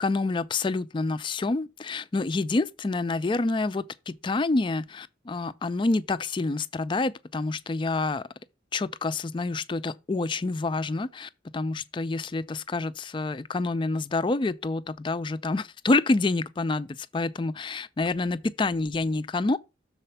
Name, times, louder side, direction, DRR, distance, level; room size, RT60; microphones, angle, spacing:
voice 1, 0.0-8.2 8.7-19.6, left 3 dB, 25° left, 0.3 m, -27 dB
6.7 x 4.2 x 5.6 m
head